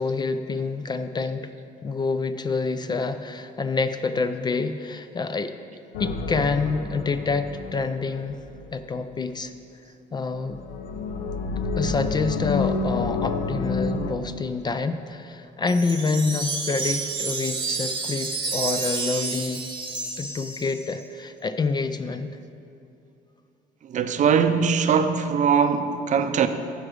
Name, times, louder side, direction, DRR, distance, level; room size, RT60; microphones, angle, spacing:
voice 1, 0.0-1.5 1.8-5.5 6.0-8.4 8.7-9.5 10.1-10.6 11.8-19.6 20.2-22.3, left 4 dB, 25° left, 0.4 m, -27 dB
sound 1, 5.9-8.7 10.3-14.1, left 4 dB, 75° left, 0.7 m, -29 dB
Wind chime, 15.7-21.0, right 4 dB, 30° right, 1.0 m, -30 dB
voice 2, 23.9-26.5, right 6 dB, 45° right, 0.5 m, -21 dB
9.7 x 5.0 x 6.3 m
cardioid pair, 110°, 17 cm